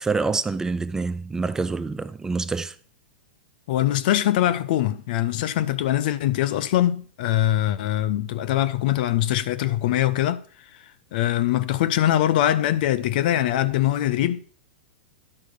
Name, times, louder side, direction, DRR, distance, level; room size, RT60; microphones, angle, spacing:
voice 1, 0.0-2.8, right 4 dB, 10° right, 0.4 m, -26 dB
voice 2, 3.7-10.4 11.1-14.4, left 13 dB, 60° left, 0.8 m, -22 dB
11.0 x 4.9 x 6.6 m
hypercardioid pair, 120°, 6 cm